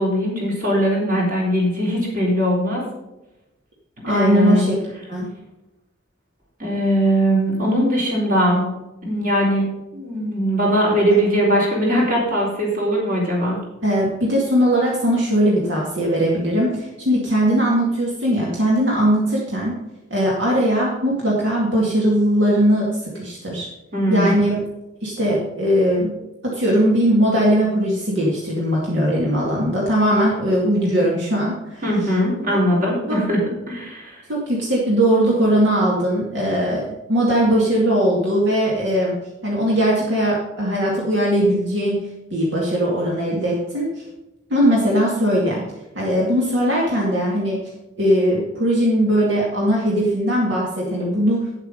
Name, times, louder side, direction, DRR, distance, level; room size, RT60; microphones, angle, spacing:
voice 1, 0.0-2.8 4.1-4.7 6.6-8.7 9.0-9.6 9.9-13.6 23.9-24.3 31.8-33.4 33.7-34.2, equal, 45° right, -3 dB, 3.9 m, -20 dB
voice 2, 4.0-4.8 5.1-5.3 13.8-19.8 20.1-22.9 23.1-23.7 24.1-24.6 25.0-26.1 26.4-31.8 32.5-32.6 33.1-33.2 34.3-39.2 39.4-42.0 42.3-44.0 44.5-45.6 46.0-47.6 48.0-51.4, equal, 70° right, -4 dB, 2.3 m, -19 dB
9.4 x 8.0 x 5.2 m, 0.96 s
head